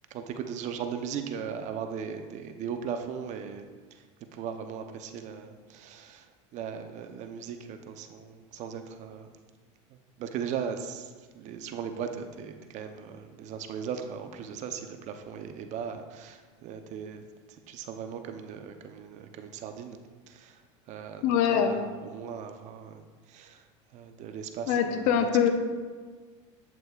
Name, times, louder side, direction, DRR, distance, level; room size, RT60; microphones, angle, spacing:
voice 1, 0.1-3.6 4.3-6.2 6.5-9.3 10.2-17.2 17.7-20.0 20.3-20.6 20.9-23.0 23.3-23.6 23.9-24.8 25.1-25.2, right 7 dB, 50° right, 7 dB, 0.7 m, -38 dB
voice 2, 21.2-21.7 24.7-25.5, left 8 dB, 65° left, 6 dB, 0.8 m, -23 dB
8.4 x 7.5 x 2.4 m, 1.5 s
supercardioid pair, 105°, 16 cm